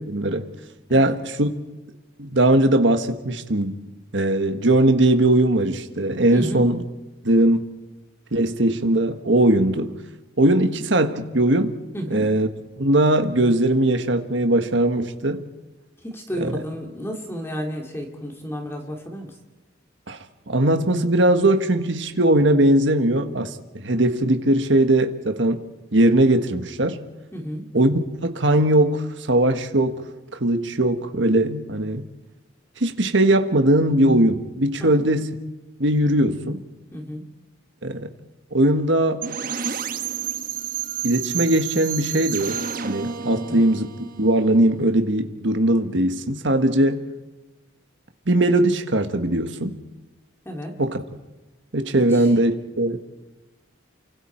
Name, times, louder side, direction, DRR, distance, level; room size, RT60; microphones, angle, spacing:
voice 1, 0.1-0.5 0.9-1.5 2.2-3.8 4.1-6.8 7.2-7.6 8.3-10.0 10.4-11.8 12.1-12.5 12.8-15.4 16.4-16.6 20.1-20.2 20.5-23.6 23.8-25.6 25.9-27.0 27.7-30.0 30.3-32.0 32.8-35.3 35.8-36.6 37.8-38.1 38.5-39.2 41.0-47.0 48.3-49.8 50.8-51.0 51.7-53.0, right 1 dB, 65° right, 1.5 m, -20 dB
voice 2, 6.3-6.7 11.9-12.3 16.0-19.3 27.3-27.6 34.8-35.0 36.9-37.2 43.5-43.6 50.4-50.7 52.1-52.3, equal, 10° left, 2.6 m, -32 dB
sound 1, 39.2-45.0, right 8 dB, 45° right, 1.2 m, -30 dB
29.0 x 25.5 x 4.5 m
head